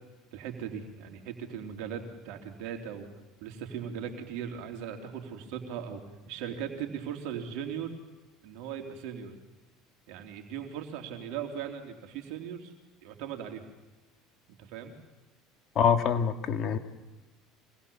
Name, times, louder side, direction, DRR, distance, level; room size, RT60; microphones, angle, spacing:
voice 1, 0.3-3.1 3.4-6.0 6.3-8.0 8.4-9.3 10.1-12.7 13.0-13.6 14.6-14.9, right 8 dB, 70° right, 4 dB, 3.4 m, -38 dB
voice 2, 15.8-16.8, left 7 dB, 50° left, 7 dB, 2.0 m, -25 dB
25.5 x 19.5 x 7.1 m, 1.2 s
supercardioid pair, 90°, 0 cm